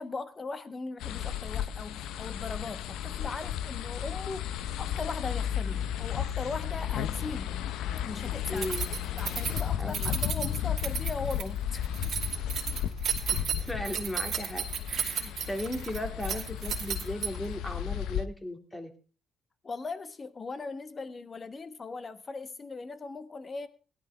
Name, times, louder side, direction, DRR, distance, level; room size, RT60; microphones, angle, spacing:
voice 1, 0.0-7.6 8.0-8.8 9.2-11.9 19.6-23.7, left 3 dB, 35° left, 1.3 m, -39 dB
sound 1, 1.0-18.3, left 10 dB, 85° left, 0.6 m, -34 dB
voice 2, 8.5-8.8 9.8-10.1 13.3-14.6 14.9-18.9, left 1 dB, 15° left, 2.4 m, -36 dB
Keys jangling, 8.6-17.6, right 8 dB, 60° right, 2.7 m, -34 dB
17.0 x 11.5 x 3.4 m
cardioid pair, 90°, 0 cm